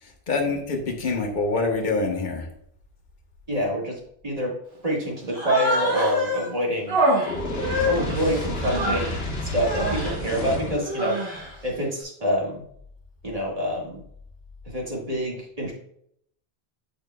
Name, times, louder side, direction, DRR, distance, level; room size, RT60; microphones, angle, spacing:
voice 1, 0.3-2.5, left 3 dB, 50° left, 1 dB, 1.1 m, -25 dB
voice 2, 3.5-4.5 4.8-7.0 7.9-9.2 9.5-11.2 11.6-12.6 13.2-14.0 14.7-15.7, equal, 35° right, -3 dB, 1.9 m, -26 dB
Human voice, 5.3-6.5 6.9-9.2 9.6-10.2 10.8-11.5, equal, 75° right, 1.8 m, -26 dB
Fire, 7.2-10.9, left 1 dB, 75° left, 1.3 m, -30 dB
8.7 x 5.1 x 2.2 m, 0.68 s
omnidirectional pair, 1.0 m